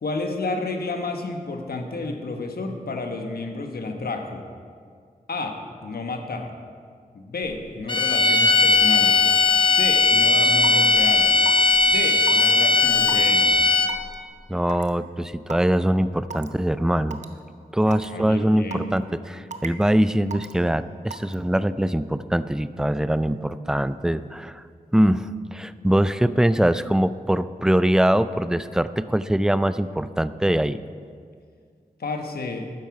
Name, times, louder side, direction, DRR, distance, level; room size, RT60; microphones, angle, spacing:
voice 1, 0.0-4.4 5.3-6.5 7.1-9.2 9.6-11.4 11.8-13.6 17.8-19.0 32.0-32.7, left 3 dB, 80° left, 4 dB, 1.1 m, -31 dB
sound 1, 7.9-14.1, left 4 dB, 30° left, 1.2 m, -18 dB
Raindrop / Water tap faucet / Drip, 10.6-10.9 11.5-11.7 12.3-12.4 13.1-13.3 13.9-14.1 14.7-14.9 15.5-15.6 16.3-16.5 17.1-17.2 17.9-18.1 18.7-19.0 19.5-19.8 20.3-20.5 21.1-21.3, right 5 dB, 50° right, 0.8 m, -33 dB
voice 2, 14.5-17.2 17.7-24.6 24.9-30.8, right 1 dB, 5° right, 14 dB, 0.4 m, -22 dB
12.0 x 9.7 x 4.7 m, 2.1 s
cardioid pair, 45°, 16 cm